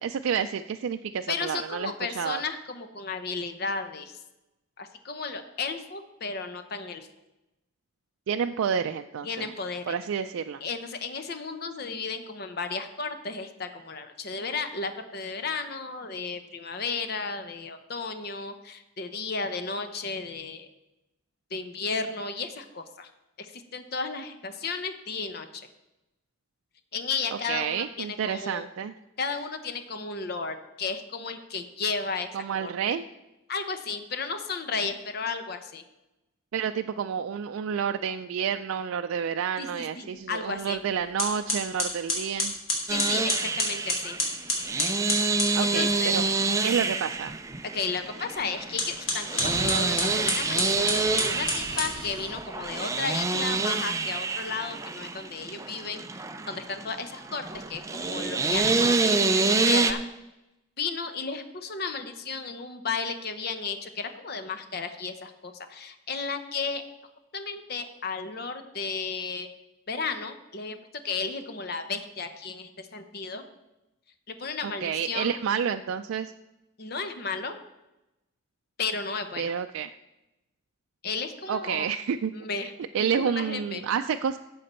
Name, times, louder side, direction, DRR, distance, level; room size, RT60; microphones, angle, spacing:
voice 1, 0.0-2.4 8.3-9.5 9.9-10.6 27.5-28.9 32.3-33.0 36.5-42.5 45.5-46.2 46.6-47.3 74.6-76.3 79.4-79.9 81.5-82.3 82.9-84.4, right 7 dB, 80° right, 7 dB, 0.3 m, -29 dB
voice 2, 1.3-4.2 4.8-7.1 9.2-10.0 10.6-20.7 21.5-23.1 23.4-25.7 26.9-28.6 29.2-32.3 32.6-32.7 33.5-35.8 39.6-40.8 42.9-44.2 45.6-46.2 47.7-56.0 56.5-60.0 60.8-66.8 67.3-69.5 69.9-70.8 71.0-73.4 74.3-75.3 76.8-77.5 78.8-79.5 81.0-81.9 82.3-83.8, left 4 dB, 50° left, 8 dB, 0.8 m, -34 dB
sound 1, 40.6-40.8 41.2-45.6 48.7-52.3, left 2 dB, 75° left, 2.9 m, -30 dB
sound 2, 42.9-59.9, right 3 dB, 15° right, 0.4 m, -27 dB
12.0 x 7.6 x 4.3 m, 0.96 s
head